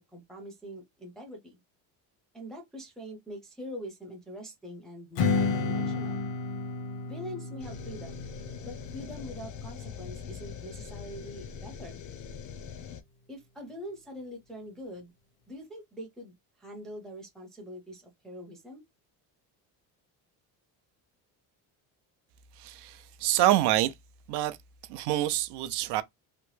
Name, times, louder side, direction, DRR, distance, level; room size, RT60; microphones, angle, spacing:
voice 1, 0.0-1.6 2.3-6.2 7.1-8.3 8.6-12.0 13.3-15.1 15.5-18.8, equal, ahead, 0.6 m, -43 dB
Strum, 5.2-10.4, left 4 dB, 85° left, 1.0 m, -32 dB
sound 1, 7.6-13.0, left 7 dB, 45° left, 0.5 m, -42 dB
voice 2, 22.6-23.9 24.3-24.6 24.9-26.0, right 14 dB, 70° right, 0.6 m, -26 dB
2.9 x 2.1 x 3.1 m
cardioid pair, 155°, 42 cm